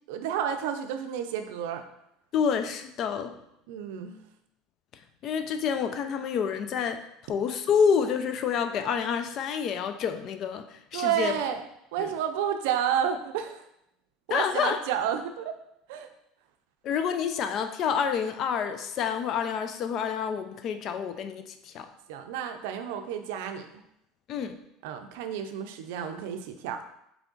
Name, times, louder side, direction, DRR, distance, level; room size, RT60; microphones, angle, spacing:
voice 1, 0.1-1.8 3.7-4.2 10.9-13.6 14.3-15.5 15.9-16.1 22.1-23.8 24.8-26.8, right 9 dB, 80° right, 7 dB, 0.4 m, -31 dB
voice 2, 2.3-3.3 5.2-7.0 7.3-10.6 10.9-11.3 12.0-12.1 14.3-14.8 16.8-21.9 24.3-24.6, left 7 dB, 50° left, 8 dB, 0.4 m, -28 dB
3.6 x 3.4 x 3.8 m, 0.80 s
supercardioid pair, 105°, 0 cm